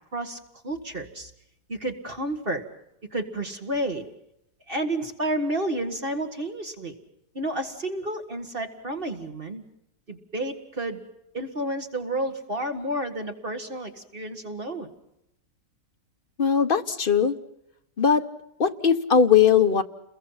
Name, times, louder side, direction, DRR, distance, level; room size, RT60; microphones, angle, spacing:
voice 1, 0.6-1.3 1.7-2.6 3.1-4.1 4.7-6.9 7.4-9.6 10.1-11.0 11.3-14.9, right 1 dB, 35° right, 5 dB, 1.8 m, -30 dB
voice 2, 16.4-17.4 18.0-18.3 18.6-19.8, left 7 dB, 35° left, 7 dB, 1.1 m, -19 dB
29.5 x 22.0 x 5.7 m, 0.81 s
omnidirectional pair, 1.8 m